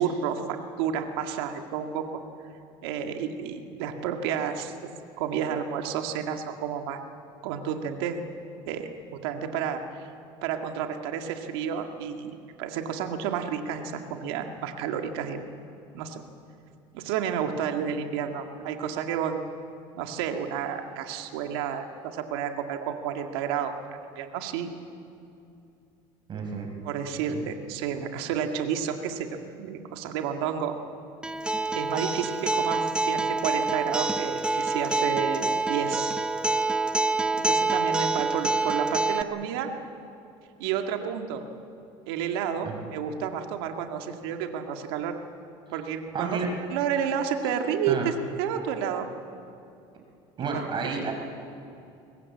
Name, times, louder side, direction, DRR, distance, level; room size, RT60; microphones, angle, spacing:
voice 1, 0.0-2.2 2.8-4.7 5.2-7.0 7.4-8.2 8.7-8.9 9.2-10.1 10.4-15.4 15.9-16.2 16.9-19.4 19.9-23.7 24.2-24.7 26.8-29.3 29.6-30.7 31.7-36.1 37.3-39.7 40.6-41.4 42.1-45.1 45.7-46.4 46.7-48.1 48.4-49.1 50.5-50.6, right 8 dB, 85° right, 5 dB, 2.0 m, -30 dB
voice 2, 26.3-26.7 27.1-27.5 42.6-42.8 46.1-46.5 47.9-48.1 50.4-51.1, right 5 dB, 40° right, 2 dB, 5.6 m, -31 dB
Acoustic guitar, 31.2-39.2, right 3 dB, 5° right, 0.8 m, -26 dB
23.0 x 19.5 x 8.5 m, 2.6 s
supercardioid pair, 115°, 13 cm